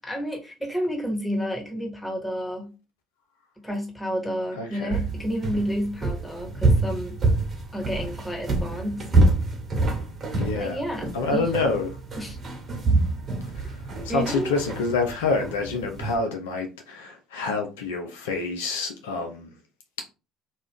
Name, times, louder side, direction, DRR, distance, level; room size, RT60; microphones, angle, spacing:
voice 1, 0.0-2.7 3.6-7.2 7.7-9.1 10.5-11.8 12.2-12.4 14.1-14.6, equal, 10° left, 1.3 m, -30 dB
voice 2, 4.6-5.0 10.3-10.8 11.1-11.9 13.4-19.5, left 3 dB, 75° left, 0.5 m, -28 dB
sound 1, 4.9-16.2, right 2 dB, 35° right, 1.1 m, -26 dB
2.5 x 2.3 x 3.5 m
figure-of-eight pair, 60°, 0 cm